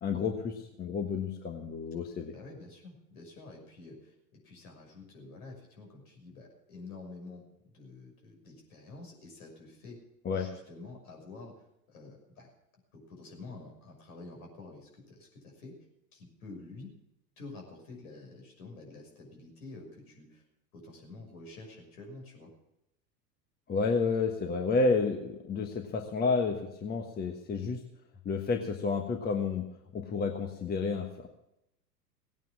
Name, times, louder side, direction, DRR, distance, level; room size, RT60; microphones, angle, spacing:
voice 1, 0.0-2.3 10.2-10.5 23.7-27.8 28.2-29.7 29.9-31.3, left 4 dB, 20° left, 4 dB, 1.4 m, -30 dB
voice 2, 2.3-10.0 10.3-12.5 12.9-15.8 16.1-16.9 17.4-20.4 20.7-22.5, left 3 dB, 60° left, 2 dB, 6.1 m, -49 dB
17.5 x 9.2 x 7.4 m, 0.84 s
figure-of-eight pair, 95°, 49 cm